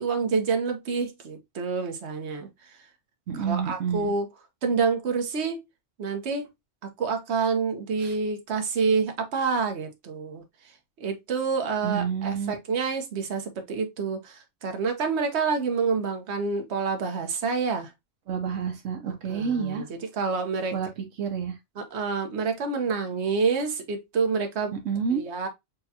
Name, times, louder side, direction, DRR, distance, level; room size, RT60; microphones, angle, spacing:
voice 1, 0.0-2.5 3.3-4.3 4.6-5.6 6.0-6.4 7.0-10.4 11.0-17.9 19.0-20.7 21.8-24.7 25.1-25.5, right 5 dB, 65° right, 1.2 m, -28 dB
voice 2, 3.3-4.1 8.0-8.2 11.8-12.5 18.3-19.9 20.7-20.9 21.2-21.6 24.7-25.2, right 7 dB, 85° right, 1.2 m, -29 dB
6.7 x 2.3 x 2.7 m
omnidirectional pair, 1.2 m